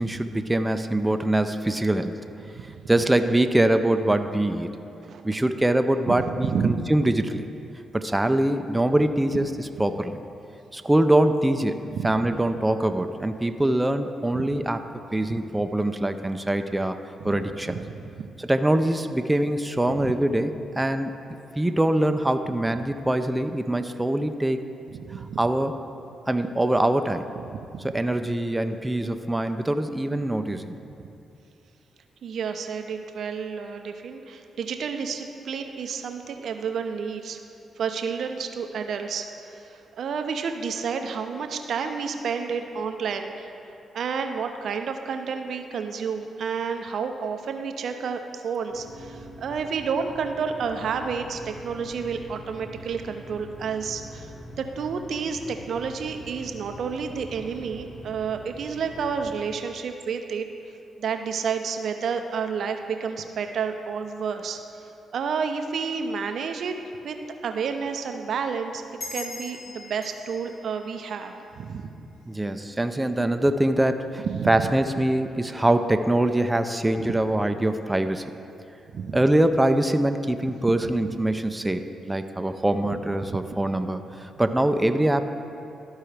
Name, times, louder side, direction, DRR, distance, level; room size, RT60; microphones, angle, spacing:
voice 1, 0.0-2.2 2.9-4.7 5.2-7.4 7.9-10.2 10.7-14.8 15.1-17.0 17.2-17.8 18.4-21.1 21.6-24.6 25.4-25.7 26.3-27.3 27.8-30.7 72.3-78.3 79.1-85.2, right 1 dB, 15° right, 8 dB, 0.4 m, -23 dB
voice 2, 6.1-6.8 11.9-12.1 14.4-14.5 15.3-15.4 17.2-17.4 17.7-18.0 19.9-20.1 25.1-25.4 27.4-27.6 32.2-37.4 37.8-43.5 43.9-54.3 54.6-60.5 61.0-64.6 65.1-66.7 67.0-67.2 67.4-68.8 69.1-71.8 74.2-74.8 78.9-79.2 82.9-83.0 83.2-83.4, right 6 dB, 65° right, 6 dB, 0.5 m, -30 dB
sound 1, 48.7-59.4, equal, 45° left, 1.1 m, -44 dB
sound 2, 69.0-72.1, left 2 dB, 60° left, 1.6 m, -41 dB
13.0 x 4.5 x 3.4 m, 2.6 s
hypercardioid pair, 45°, 0 cm